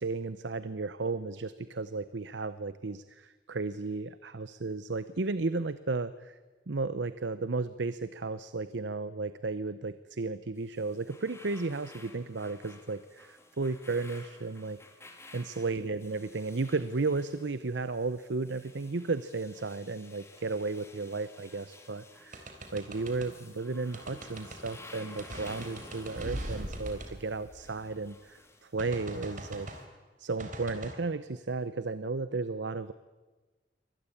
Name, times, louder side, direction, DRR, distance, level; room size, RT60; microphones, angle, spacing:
voice 1, 0.0-6.4 6.7-14.8 15.3-22.5 22.7-29.7 30.2-32.9, right 3 dB, 75° right, 14 dB, 0.8 m, -34 dB
sound 1, 10.6-29.8, left 2 dB, 15° left, 2.4 m, -54 dB
sound 2, 22.3-23.3 23.9-24.8 25.2-28.1 28.8-29.9 30.4-30.9, right 1 dB, 45° right, 3.5 m, -41 dB
24.5 x 19.0 x 8.6 m, 1.2 s
head